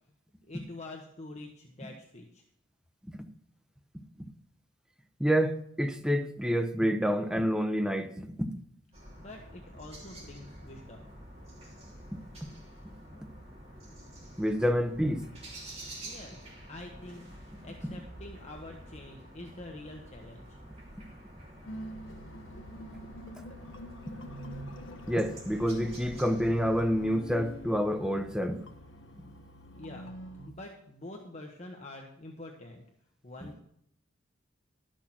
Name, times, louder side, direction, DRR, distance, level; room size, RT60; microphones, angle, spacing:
voice 1, 0.5-2.4 9.2-11.1 16.0-17.3 17.6-20.6 29.7-30.1 30.4-32.8 33.2-33.6, left 2 dB, 35° left, 1 dB, 1.1 m, -46 dB
voice 2, 3.9-4.3 5.2-8.6 12.1-12.5 14.4-15.2 24.1-24.2 25.1-28.6, equal, 5° right, 6 dB, 0.8 m, -28 dB
sound 1, 8.9-27.0, right 1 dB, 35° right, 2.9 m, -48 dB
sound 2, 21.6-30.5, equal, 80° left, 1.0 m, -45 dB
12.5 x 6.4 x 5.9 m, 0.71 s
head